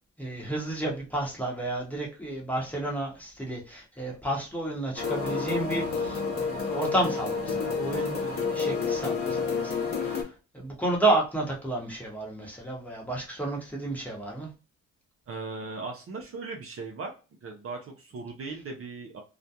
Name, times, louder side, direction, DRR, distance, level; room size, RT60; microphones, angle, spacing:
voice 1, 0.2-9.7 10.0-10.3 10.5-14.5, right 2 dB, 5° left, -2 dB, 1.0 m, -31 dB
sound 1, 5.0-10.2, left 5 dB, 45° left, 0.8 m, -29 dB
voice 2, 15.3-17.1 17.4-19.2, right 3 dB, 50° right, 2 dB, 0.6 m, -38 dB
2.3 x 2.2 x 2.7 m, 0.32 s
cardioid pair, 90°, 30 cm